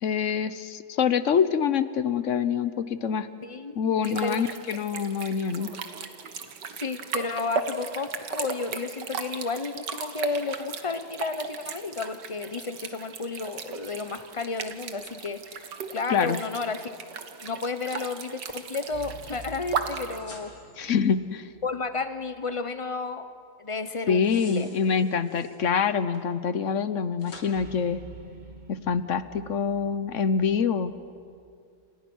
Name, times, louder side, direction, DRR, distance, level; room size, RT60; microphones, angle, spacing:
voice 1, 0.0-3.3 3.8-5.7 16.1-16.4 20.8-21.5 24.1-28.0 28.7-30.9, left 6 dB, 55° left, 13 dB, 0.9 m, -25 dB
voice 2, 3.4-4.4 6.7-16.9 17.4-20.5 21.6-23.3 23.6-24.7, left 4 dB, 35° left, 10 dB, 0.5 m, -32 dB
sound 1, 4.0-20.2, right 5 dB, 60° right, 2.0 m, -36 dB
sound 2, 13.8-14.8 18.9-22.5 27.5-31.6, right 3 dB, 30° right, 1.0 m, -49 dB
sound 3, 20.1-21.2 24.0-25.7 26.1-26.2 27.2-27.5, left 2 dB, 75° left, 4.2 m, -48 dB
29.5 x 28.0 x 6.3 m, 2.4 s
omnidirectional pair, 2.2 m